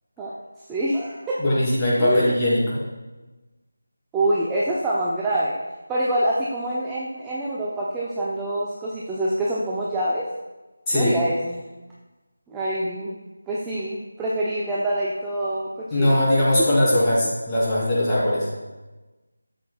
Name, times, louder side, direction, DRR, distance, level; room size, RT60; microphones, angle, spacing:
voice 1, 0.7-1.4 2.0-2.3 4.1-5.6 5.9-10.2 10.9-11.6 12.5-13.2 13.5-16.1 16.8-17.0, right 1 dB, 10° right, -7 dB, 0.6 m, -26 dB
voice 2, 1.4-2.8 10.9-11.2 15.9-18.5, left 1 dB, 15° left, -9 dB, 2.6 m, -20 dB
11.5 x 7.5 x 2.3 m, 1.1 s
figure-of-eight pair, 165°, 0 cm